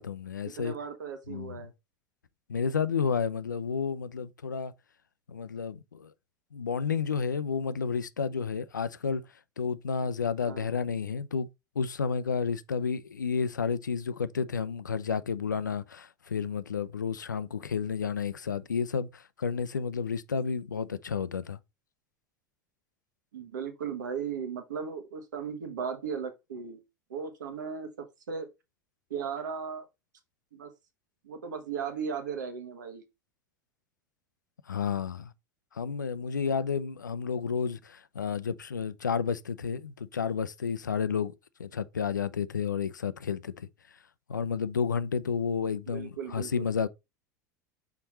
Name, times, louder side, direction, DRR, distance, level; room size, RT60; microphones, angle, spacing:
voice 1, 0.0-0.7 1.3-1.5 2.5-4.7 5.3-6.1 6.5-9.2 9.6-11.5 11.8-21.6 34.7-35.3 35.7-41.3 41.6-43.7 44.3-46.9, left 6 dB, 85° left, 0.5 m, -31 dB
voice 2, 0.6-1.7 10.0-10.1 10.4-10.7 23.3-26.8 27.1-28.5 29.1-29.8 30.5-30.7 31.2-33.0 45.9-46.7, right 6 dB, 75° right, 1.4 m, -36 dB
5.9 x 4.2 x 4.2 m
figure-of-eight pair, 75°, 10 cm